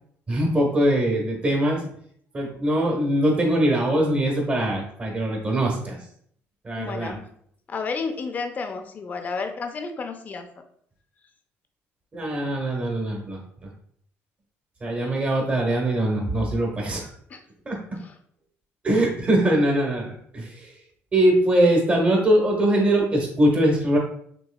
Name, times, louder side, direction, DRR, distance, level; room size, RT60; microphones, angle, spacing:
voice 1, 0.3-1.8 2.3-6.0 6.6-7.2 12.1-13.4 14.8-17.1 17.6-18.0 18.8-20.7 21.1-24.0, right 1 dB, 25° right, 0 dB, 1.3 m, -22 dB
voice 2, 6.8-7.3 7.7-10.5 17.3-17.4 18.0-18.1, left 4 dB, 35° left, 6 dB, 0.5 m, -31 dB
5.9 x 3.1 x 2.3 m, 0.65 s
cardioid pair, 130°, 5 cm